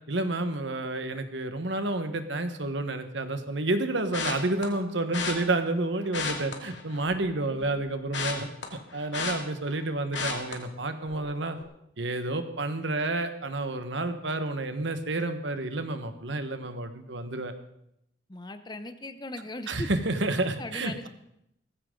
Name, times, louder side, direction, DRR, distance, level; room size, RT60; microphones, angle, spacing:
voice 1, 0.1-8.5 8.9-11.6 12.0-17.5 19.7-21.1, right 2 dB, 70° right, 8 dB, 1.4 m, -30 dB
sound 1, 4.1-4.6 5.1-5.3 6.0-7.3 7.6-9.8 10.1-10.5 11.0-11.3 11.6-11.7, left 5 dB, 70° left, 2.5 m, -33 dB
voice 2, 7.3-7.8 18.3-19.9 20.6-21.1, left 2 dB, 20° left, 10 dB, 0.8 m, -39 dB
18.0 x 15.0 x 3.9 m, 0.78 s
head